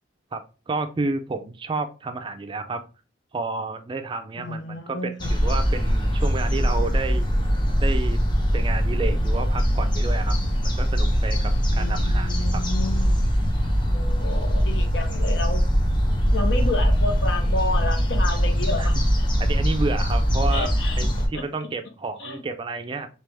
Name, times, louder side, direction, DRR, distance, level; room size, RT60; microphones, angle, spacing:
voice 1, 0.3-2.8 3.3-7.3 7.8-8.2 8.5-10.4 10.6-12.6 18.8-18.9 19.4-23.1, right 3 dB, 25° right, 8 dB, 0.3 m, -30 dB
voice 2, 4.4-5.3 11.7-13.2 13.9-15.6 16.3-19.3 20.5-21.7 22.2-22.4, left 2 dB, 70° left, 5 dB, 0.7 m, -31 dB
sound 1, 5.2-21.3, equal, 25° left, 0.7 m, -22 dB
3.3 x 2.9 x 3.3 m, 0.33 s
head